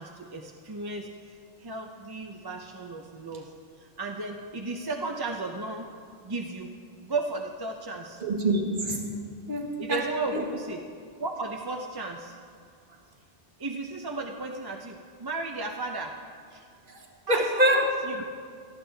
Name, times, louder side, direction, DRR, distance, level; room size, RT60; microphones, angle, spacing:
voice 1, 0.0-3.5 3.8-5.9 6.2-8.2 9.8-10.9 11.2-12.4 13.6-16.2 16.5-16.7 17.3-18.3, right 3 dB, 30° right, 2 dB, 0.5 m, -35 dB
voice 2, 8.2-9.0 9.5-10.0 10.3-10.4 16.9-17.0 17.3-17.8, right 1 dB, 50° right, 1 dB, 1.6 m, -25 dB
18.0 x 12.5 x 3.4 m, 2.1 s
omnidirectional pair, 1.1 m